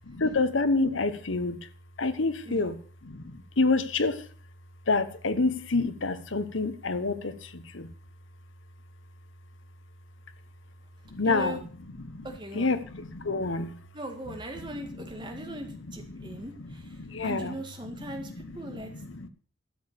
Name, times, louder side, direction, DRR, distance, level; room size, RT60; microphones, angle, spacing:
voice 1, 0.2-1.7 2.0-2.8 3.0-4.3 4.9-7.9 11.0-11.6 12.0-12.3 12.5-13.8 14.6-14.7 15.3-16.7 17.0-17.6 18.1-19.3, left 3 dB, 75° left, 11 dB, 1.0 m, -28 dB
voice 2, 11.2-11.6 12.2-12.7 13.9-18.9, right 1 dB, 25° right, 4 dB, 2.0 m, -39 dB
12.5 x 7.0 x 6.7 m, 0.43 s
head